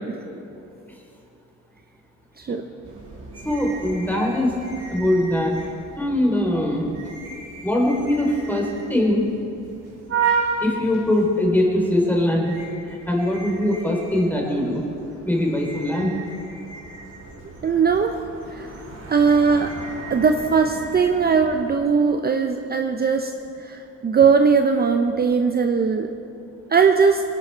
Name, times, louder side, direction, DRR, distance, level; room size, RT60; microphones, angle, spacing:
sound 1, 2.8-21.7, right 5 dB, 55° right, 4.0 m, -34 dB
voice 1, 3.4-4.6 4.9-5.5 6.0-6.8 7.6-9.3 10.6-12.5 12.9-14.8 15.2-16.2, left 1 dB, 5° left, -1 dB, 3.3 m, -21 dB
voice 2, 17.6-18.7 19.1-19.7 20.1-23.3 23.6-26.1 26.7-27.2, right 5 dB, 30° right, 6 dB, 0.7 m, -19 dB
19.0 x 11.0 x 4.5 m, 2.8 s
cardioid pair, 90°, 30 cm